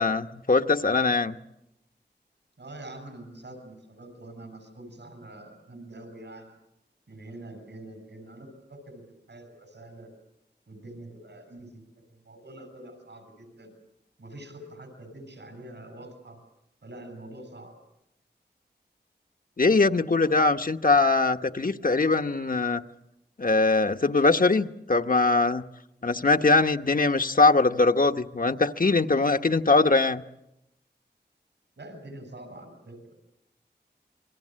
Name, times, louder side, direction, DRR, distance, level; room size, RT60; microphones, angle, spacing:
voice 1, 0.0-1.4 19.6-22.8 23.4-25.6 26.0-30.2, left 3 dB, 50° left, 7 dB, 1.0 m, -22 dB
voice 2, 2.6-6.6 7.1-10.1 10.7-13.7 14.2-16.4 16.8-17.7 31.8-33.2, right 1 dB, 85° right, 8 dB, 6.8 m, -45 dB
28.0 x 23.0 x 7.6 m, 0.87 s
wide cardioid pair, 60°, 18 cm